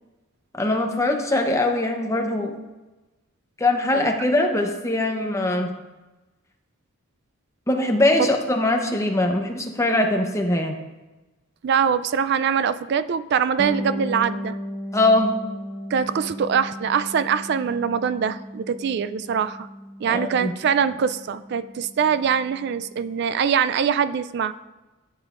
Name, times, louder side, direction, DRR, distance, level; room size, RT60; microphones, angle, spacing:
voice 1, 0.6-2.5 3.6-5.7 7.7-10.8 14.9-15.3 20.1-20.5, left 2 dB, 15° left, 3 dB, 0.7 m, -22 dB
voice 2, 11.6-14.6 15.9-19.7 20.0-24.5, right 7 dB, 50° right, 15 dB, 0.3 m, -23 dB
Bass guitar, 13.6-23.2, equal, 30° right, 1.2 m, -36 dB
13.0 x 8.3 x 2.5 m, 1.1 s
head